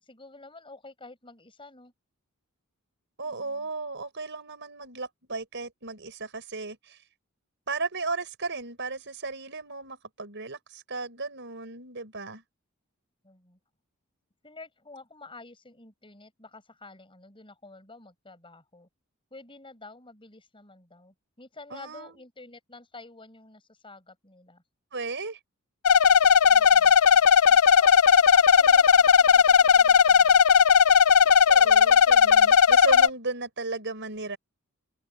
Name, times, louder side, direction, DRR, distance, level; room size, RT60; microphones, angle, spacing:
voice 1, 0.0-1.9 3.2-3.7 13.2-13.6 14.4-18.9 19.3-24.6 26.5-26.9 27.5-30.4, left 3 dB, 25° left, 6.0 m, -48 dB
voice 2, 3.2-7.0 7.7-12.4 21.7-22.1 24.9-25.4 31.2-34.4, right 3 dB, 55° right, 5.6 m, -35 dB
sound 1, 25.8-33.1, left 6 dB, 90° left, 0.5 m, -17 dB
open air
head